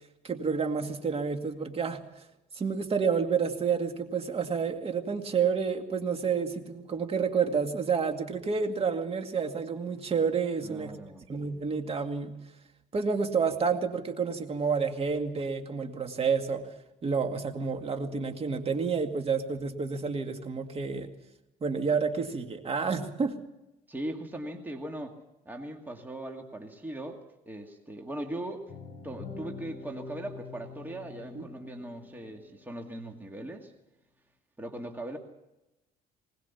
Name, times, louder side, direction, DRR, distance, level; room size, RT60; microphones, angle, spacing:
voice 1, 0.2-2.2 2.5-11.0 11.3-12.3 12.9-16.7 17.0-21.1 21.6-23.4 31.3-31.5, right 5 dB, 35° right, 6 dB, 2.2 m, -29 dB
voice 2, 10.6-11.3 23.9-25.2 25.5-28.7 29.0-33.7 34.6-35.2, right 1 dB, 10° right, 2 dB, 2.1 m, -39 dB
sound 1, 28.7-32.9, left 4 dB, 50° left, 4.7 m, -45 dB
21.0 x 19.5 x 7.1 m, 0.95 s
cardioid pair, 110°, 17 cm